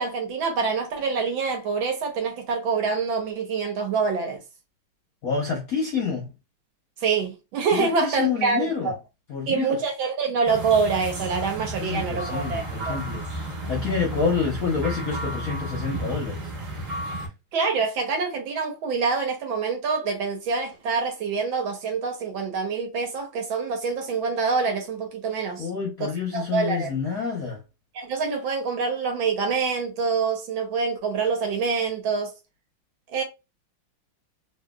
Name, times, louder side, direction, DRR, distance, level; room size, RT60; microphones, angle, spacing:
voice 1, 0.0-4.4 7.0-8.9 9.5-13.0 17.2-17.3 17.5-25.7 26.3-26.9 27.9-32.3 33.1-33.2, right 5 dB, 70° right, 1.5 m, -26 dB
voice 2, 5.2-6.3 7.7-8.9 9.3-9.8 11.8-13.2 13.7-16.5 25.6-27.6, left 5 dB, 60° left, 0.9 m, -28 dB
sound 1, 10.4-17.3, right 1 dB, 45° right, 1.3 m, -32 dB
3.2 x 2.9 x 2.2 m
omnidirectional pair, 2.4 m